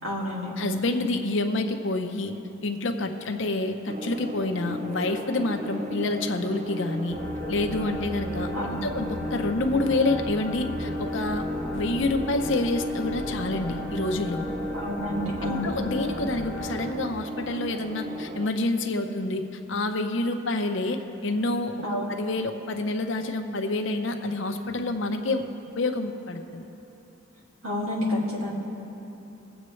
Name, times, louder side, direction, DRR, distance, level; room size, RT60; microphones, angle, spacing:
voice 1, 0.0-0.5 8.5-8.8 14.7-15.7 21.8-22.1 27.6-28.5, left 1 dB, 75° right, -5 dB, 2.6 m, -29 dB
voice 2, 0.6-2.3 2.6-7.2 7.5-8.5 8.8-11.5 11.7-14.4 15.4-19.4 19.7-21.7 22.1-25.4 25.7-26.7, left 2 dB, 60° left, 5 dB, 0.8 m, -28 dB
sound 1, 3.9-18.5, equal, 35° right, 0.4 m, -35 dB
sound 2, 7.1-16.9, left 1 dB, 15° left, 1.0 m, -37 dB
22.0 x 8.0 x 3.2 m, 3.0 s
head